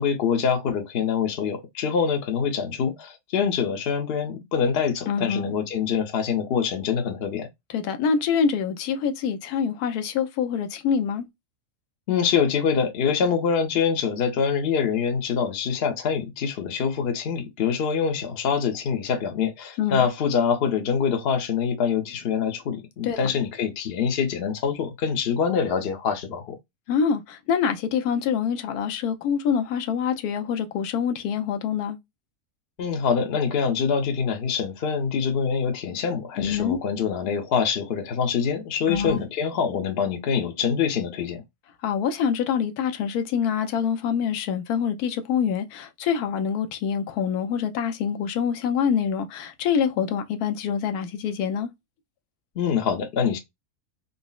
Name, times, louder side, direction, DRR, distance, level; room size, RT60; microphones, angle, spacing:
voice 1, 0.0-7.5 12.1-26.6 32.8-41.4 52.6-53.4, left 6 dB, 50° left, 0.8 m, -25 dB
voice 2, 5.1-5.5 7.7-11.3 19.8-20.0 23.0-23.3 26.9-32.0 36.4-36.8 38.9-39.2 41.8-51.7, left 7 dB, 90° left, 1.1 m, -25 dB
3.9 x 2.0 x 2.2 m
omnidirectional pair, 1.6 m